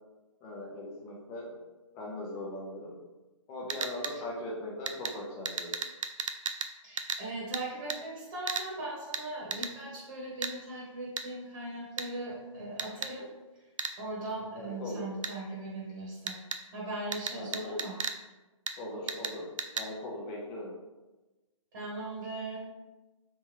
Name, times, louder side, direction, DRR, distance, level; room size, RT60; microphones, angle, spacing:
voice 1, 0.4-1.6 1.9-2.9 3.5-5.7 14.5-15.1 17.3-17.8 18.8-19.4 19.7-20.7, left 1 dB, 20° left, -4 dB, 0.8 m, -40 dB
sound 1, 3.7-4.1 4.9-5.1 5.4-6.7 7.0-7.2 7.5-7.6 7.9-8.0 8.5-8.7 9.1-9.2 9.5-9.7 10.4-10.5 11.2-11.3 12.0-12.1 12.8-13.1 13.8-13.9 15.2-15.3 16.3-16.6 17.1-18.2 18.7-18.8 19.1-19.3 19.6-19.9, right 5 dB, 75° right, 0.4 m, -34 dB
voice 2, 6.8-13.3 13.5-13.6 14.0-16.4 16.7-18.0 21.7-22.6, right 2 dB, 40° right, -6 dB, 1.3 m, -39 dB
3.5 x 3.1 x 3.0 m, 1.1 s
hypercardioid pair, 145°, 17 cm